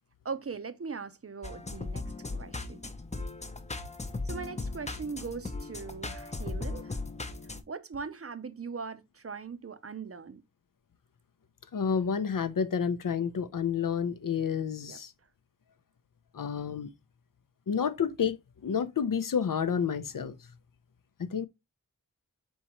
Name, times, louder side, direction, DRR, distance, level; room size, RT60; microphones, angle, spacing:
voice 1, 0.2-2.9 3.2-3.3 4.2-7.0 7.7-10.4 14.8-15.0, right 5 dB, 45° right, 0.5 m, -40 dB
sound 1, 1.4-7.6, left 3 dB, 20° left, 0.5 m, -37 dB
voice 2, 11.7-15.1 16.3-16.9 17.7-20.4 21.3-21.5, left 7 dB, 75° left, 0.5 m, -30 dB
4.2 x 3.6 x 2.9 m
wide cardioid pair, 50°, 33 cm